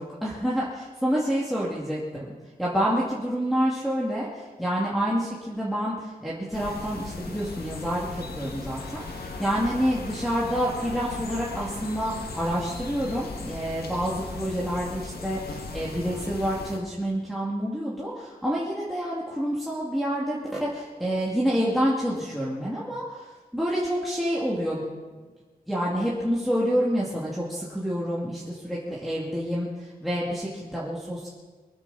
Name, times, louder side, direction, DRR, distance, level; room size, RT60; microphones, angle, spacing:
voice 1, 0.0-2.3 2.6-24.8 25.7-31.3, equal, ahead, -7 dB, 2.4 m, -28 dB
sound 1, 6.5-16.8, left 3 dB, 85° left, 2.1 m, -38 dB
24.0 x 14.0 x 4.1 m, 1.4 s
wide cardioid pair, 150°, 16 cm